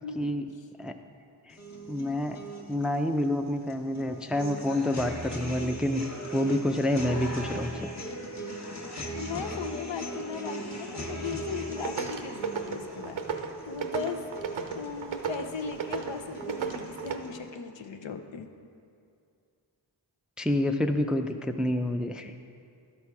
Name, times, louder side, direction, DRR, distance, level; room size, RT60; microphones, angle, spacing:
voice 1, 0.2-0.5 0.8-1.0 1.5-1.6 1.9-2.4 2.7-6.0 6.3-7.9 20.4-22.3, left 1 dB, ahead, 6 dB, 0.4 m, -28 dB
sound 1, 1.5-17.5, right 1 dB, 35° left, 1.2 m, -39 dB
voice 2, 9.1-14.2 14.8-18.5, left 5 dB, 70° left, 7 dB, 0.7 m, -37 dB
sound 2, 11.5-17.2, right 6 dB, 90° right, 0.7 m, -35 dB
11.5 x 4.3 x 4.7 m, 2.4 s
cardioid pair, 40°, 46 cm